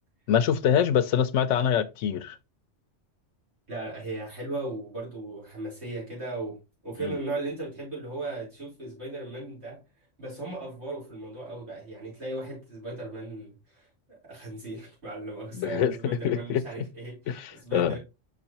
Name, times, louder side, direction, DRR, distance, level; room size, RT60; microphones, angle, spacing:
voice 1, 0.3-2.4 7.0-7.2 15.6-16.0 16.2-16.6 17.3-18.0, left 8 dB, 80° left, 0.9 m, -25 dB
voice 2, 3.7-6.6 6.8-9.8 10.2-18.0, right 2 dB, 60° right, 4.3 m, -37 dB
5.8 x 5.7 x 2.9 m
omnidirectional pair, 1.2 m